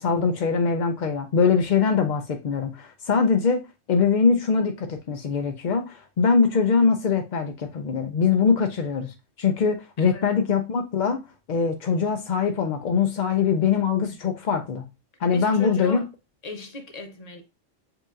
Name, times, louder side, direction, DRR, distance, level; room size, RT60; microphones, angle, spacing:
voice 1, 0.0-3.6 3.9-11.2 11.5-14.8 15.2-16.0, left 5 dB, 60° left, 0.4 m, -22 dB
voice 2, 15.3-16.0 16.4-17.4, left 3 dB, 35° left, 0.8 m, -36 dB
7.4 x 2.9 x 2.4 m
omnidirectional pair, 1.3 m